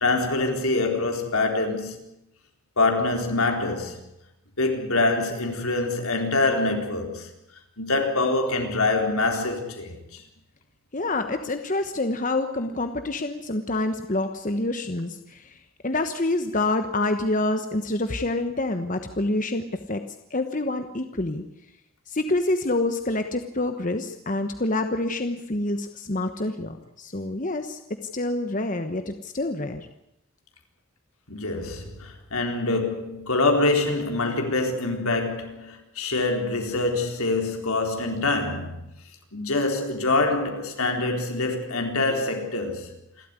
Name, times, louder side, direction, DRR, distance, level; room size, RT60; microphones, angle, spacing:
voice 1, 0.0-2.0 2.8-4.0 4.6-7.3 7.8-10.2 31.3-38.8 39.3-42.9, left 2 dB, 80° left, 4.1 m, -25 dB
voice 2, 10.9-20.0 20.3-21.4 22.1-27.8 28.1-29.9, left 2 dB, 35° left, 1.2 m, -27 dB
28.0 x 13.0 x 9.8 m
head